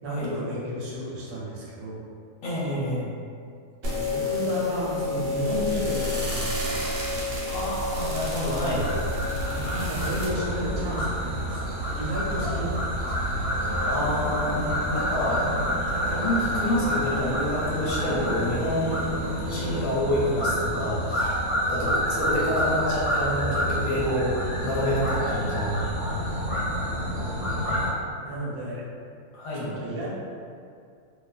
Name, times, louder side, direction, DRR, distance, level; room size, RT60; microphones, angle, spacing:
voice 1, 0.0-2.0 3.8-6.9 9.5-11.6 12.0-13.4 26.8-27.1 28.2-28.8 29.5-30.1, right 1 dB, 85° right, -5 dB, 1.2 m, -32 dB
voice 2, 2.4-3.0 7.5-8.9 13.8-21.4 21.7-25.9 26.2-26.3 29.3-29.7, left 1 dB, 65° left, -7 dB, 1.0 m, -28 dB
sound 1, 3.8-10.3, left 2 dB, 60° right, 1.0 m, -29 dB
sound 2, 5.2-19.8, right 1 dB, 10° right, 0.9 m, -40 dB
sound 3, 8.8-27.9, equal, 30° left, 1.0 m, -28 dB
2.6 x 2.3 x 2.3 m, 2.3 s
omnidirectional pair, 1.6 m